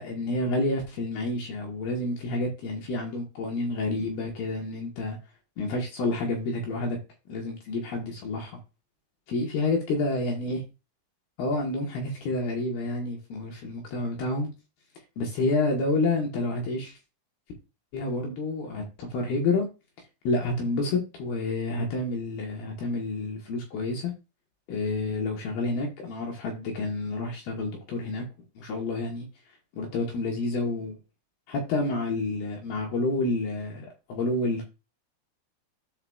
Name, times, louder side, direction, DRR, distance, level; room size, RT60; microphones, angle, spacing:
voice 1, 0.0-5.2 5.6-7.0 7.3-8.5 9.3-10.6 11.4-14.5 15.2-16.9 17.9-19.7 20.2-24.1 24.7-28.2 28.6-29.3 29.7-31.0 31.5-34.6, left 2 dB, 65° left, 2.7 m, -29 dB
13.0 x 4.9 x 2.3 m
omnidirectional pair, 5.6 m